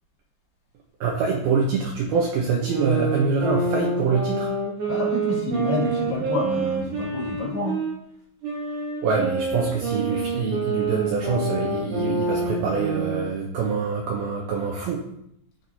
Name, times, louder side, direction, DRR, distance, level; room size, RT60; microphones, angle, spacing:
voice 1, 1.0-4.5 9.0-15.0, right 5 dB, 85° right, 0 dB, 2.1 m, -25 dB
sound 1, 2.5-7.9 8.4-13.3, right 3 dB, 60° right, 3.7 m, -27 dB
voice 2, 4.9-7.8, left 2 dB, 65° left, -4 dB, 4.0 m, -28 dB
13.0 x 4.6 x 2.8 m, 0.72 s
omnidirectional pair, 5.4 m